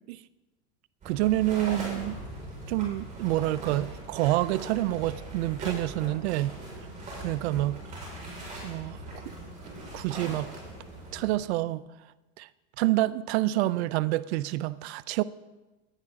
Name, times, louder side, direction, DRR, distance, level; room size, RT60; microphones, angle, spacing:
sound 1, 1.0-11.3, right 1 dB, 25° right, 5.0 m, -40 dB
voice 1, 1.0-2.2 2.7-6.5 7.2-7.8 8.6-9.3 9.9-10.5 11.1-11.8 12.4-12.5 12.8-15.2, right 16 dB, 75° right, 0.5 m, -27 dB
19.0 x 10.5 x 3.6 m
supercardioid pair, 155°, 33 cm